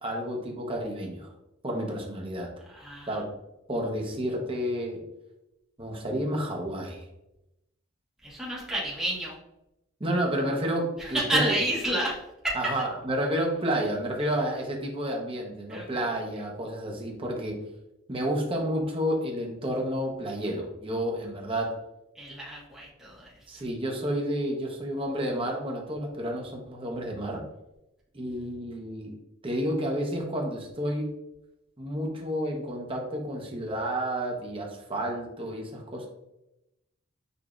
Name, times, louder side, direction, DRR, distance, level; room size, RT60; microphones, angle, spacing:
voice 1, 0.0-1.3 1.6-2.5 3.1-3.3 3.7-5.0 5.8-7.1 10.0-11.6 12.5-17.6 18.1-21.8 23.5-27.4 28.1-29.1 29.4-31.1 31.8-36.1, equal, 25° right, 0 dB, 0.8 m, -30 dB
voice 2, 2.7-3.2 8.2-9.3 11.0-12.2 12.4-12.7 15.7-16.1 22.1-23.3 23.5-23.6, right 1 dB, 5° right, -8 dB, 1.3 m, -30 dB
6.8 x 2.7 x 2.4 m, 0.89 s
head